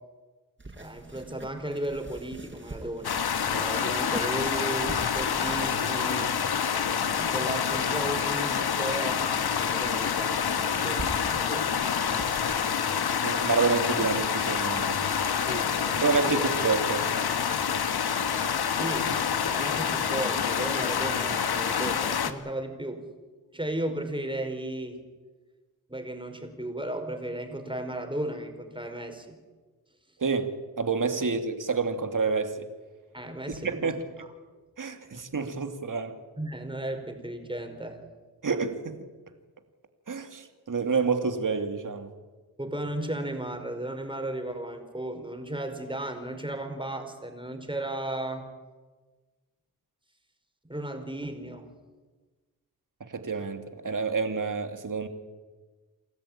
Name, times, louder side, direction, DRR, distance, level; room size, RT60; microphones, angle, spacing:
sound 1, 0.6-9.1 9.5-9.6 9.8-13.0, right 2 dB, 30° right, 5.2 m, -44 dB
voice 1, 0.8-6.3 7.1-11.7 15.5-16.6 18.7-23.0 23.5-25.0 25.9-29.4 33.1-34.3 35.1-35.2 36.4-38.0 42.6-48.4 50.6-51.7, right 1 dB, 10° right, 5 dB, 5.3 m, -35 dB
sound 2, 3.0-22.3, left 7 dB, 70° left, 1.6 m, -27 dB
voice 2, 13.2-15.0 16.0-17.1 30.2-30.5 30.8-32.7 33.6-34.0 34.8-36.1 38.4-39.1 40.1-42.1 53.1-55.1, right 4 dB, 50° right, 7 dB, 2.7 m, -28 dB
28.5 x 13.5 x 8.9 m, 1.3 s
cardioid pair, 45°, 39 cm